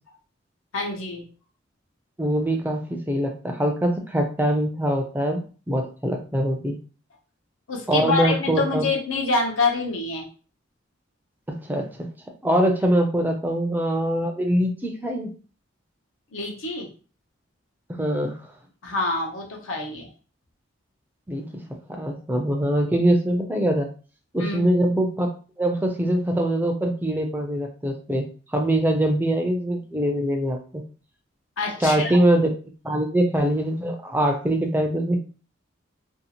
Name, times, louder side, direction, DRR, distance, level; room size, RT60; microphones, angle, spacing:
voice 1, 0.7-1.3 7.7-10.3 16.3-16.9 18.8-20.1 24.4-24.7 31.6-32.2, left 3 dB, 85° left, 1 dB, 0.8 m, -26 dB
voice 2, 2.2-5.4 5.7-6.8 7.9-8.8 11.5-11.9 12.4-15.3 17.9-18.4 21.3-21.4 21.9-23.9 24.3-25.3 25.6-30.8 31.8-32.5 32.8-35.2, right 1 dB, 10° right, 3 dB, 0.3 m, -23 dB
2.6 x 2.4 x 2.8 m, 0.37 s
head